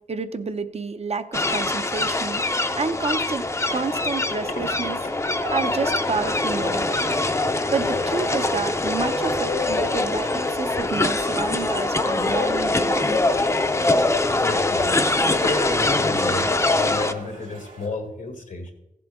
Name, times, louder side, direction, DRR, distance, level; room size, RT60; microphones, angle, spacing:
voice 1, 0.1-2.4 2.7-3.4 3.7-5.0 5.5-7.1 7.7-13.1, right 4 dB, 55° right, 9 dB, 0.6 m, -29 dB
sound 1, 1.3-17.1, left 2 dB, 20° left, 0.5 m, -23 dB
sound 2, 3.6-17.9, right 1 dB, 80° right, 3.2 m, -42 dB
voice 2, 14.2-14.9 15.3-18.7, left 2 dB, 80° left, 5 dB, 1.6 m, -32 dB
15.5 x 7.6 x 3.6 m, 0.94 s
wide cardioid pair, 105°, 13 cm